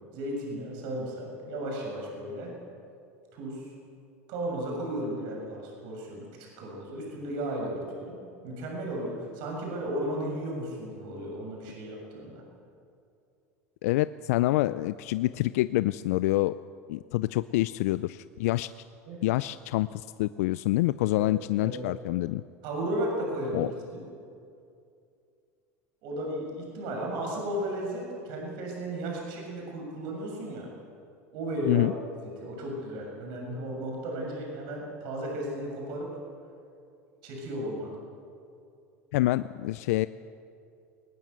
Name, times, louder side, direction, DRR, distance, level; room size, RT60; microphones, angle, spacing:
voice 1, 0.1-2.5 3.3-3.7 4.3-12.4 19.1-19.2 21.2-21.3 21.6-21.8 22.6-24.0 26.0-30.7 31.3-31.9 32.4-36.1 37.2-37.9, right 1 dB, 65° right, -1 dB, 7.0 m, -34 dB
voice 2, 13.8-16.5 16.9-18.7 19.2-22.4 23.5-23.7 31.7-31.9 39.1-40.1, left 17 dB, 70° left, 15 dB, 0.5 m, -27 dB
21.5 x 19.0 x 8.1 m, 2.5 s
hypercardioid pair, 85°, 8 cm